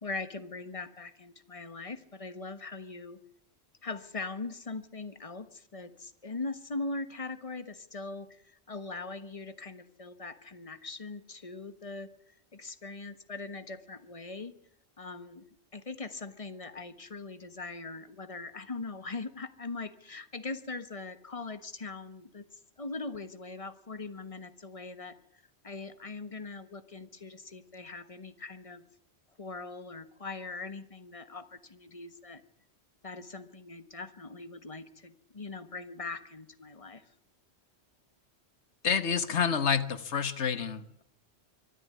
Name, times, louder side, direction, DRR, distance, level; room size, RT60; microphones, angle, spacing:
voice 1, 0.0-3.2 3.8-12.1 12.5-14.5 15.0-15.4 15.7-25.2 25.6-28.8 29.4-32.4 33.0-37.0, left 3 dB, 30° left, 12 dB, 1.3 m, -41 dB
voice 2, 38.8-41.0, left 6 dB, 75° left, 13 dB, 1.6 m, -28 dB
24.0 x 12.5 x 9.5 m, 0.72 s
omnidirectional pair, 1.2 m